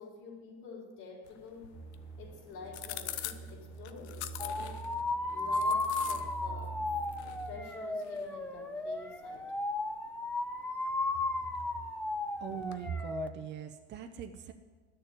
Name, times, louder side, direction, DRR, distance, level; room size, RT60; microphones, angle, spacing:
voice 1, 0.0-1.7 2.2-4.9 5.3-6.8 7.2-9.4, left 4 dB, 55° left, -1 dB, 4.1 m, -48 dB
sound 1, 1.2-12.9, left 12 dB, 85° left, 0.8 m, -48 dB
sound 2, 1.7-7.7, right 4 dB, 10° right, 1.3 m, -46 dB
sound 3, 4.4-13.3, left 2 dB, 5° left, 0.5 m, -35 dB
voice 2, 12.4-14.5, right 7 dB, 35° right, 5 dB, 0.7 m, -40 dB
10.0 x 6.8 x 8.7 m, 1.5 s
supercardioid pair, 110°, 33 cm